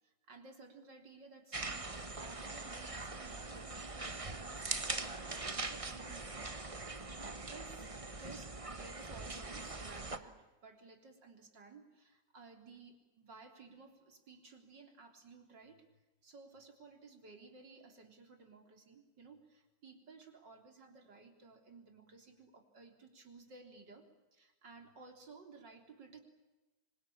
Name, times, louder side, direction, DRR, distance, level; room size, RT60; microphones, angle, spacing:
voice 1, 0.0-6.6 7.1-7.8 8.1-15.9 16.2-26.2, right 4 dB, 90° right, 4 dB, 4.4 m, -56 dB
sound 1, 1.5-10.2, right 3 dB, 20° right, 1.3 m, -42 dB
27.5 x 24.5 x 8.7 m, 1.1 s
omnidirectional pair, 1.9 m